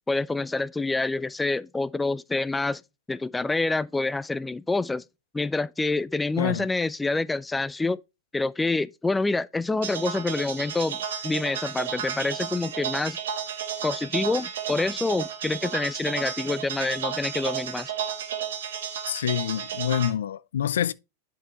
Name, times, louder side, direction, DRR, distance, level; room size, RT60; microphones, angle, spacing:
voice 1, 0.1-2.8 3.1-5.0 5.3-8.0 8.3-13.2 13.8-17.9, left 3 dB, 10° left, 0.4 m, -27 dB
sound 1, 9.8-20.1, right 8 dB, 80° right, 1.6 m, -33 dB
voice 2, 19.1-20.9, left 10 dB, 85° left, 0.4 m, -27 dB
8.1 x 5.6 x 3.1 m
hypercardioid pair, 120°, 0 cm